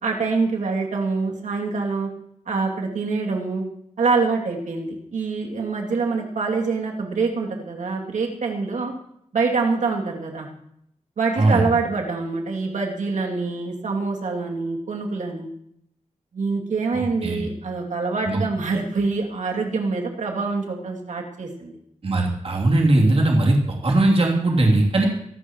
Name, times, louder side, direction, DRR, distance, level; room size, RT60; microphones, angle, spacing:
voice 1, 0.0-2.1 2.5-3.6 4.0-8.9 9.3-10.5 11.2-15.5 16.3-21.7, right 4 dB, 80° right, 0 dB, 2.7 m, -25 dB
voice 2, 22.0-25.1, right 2 dB, 50° right, -2 dB, 3.1 m, -19 dB
23.5 x 12.0 x 3.1 m, 0.74 s
wide cardioid pair, 145°, 13 cm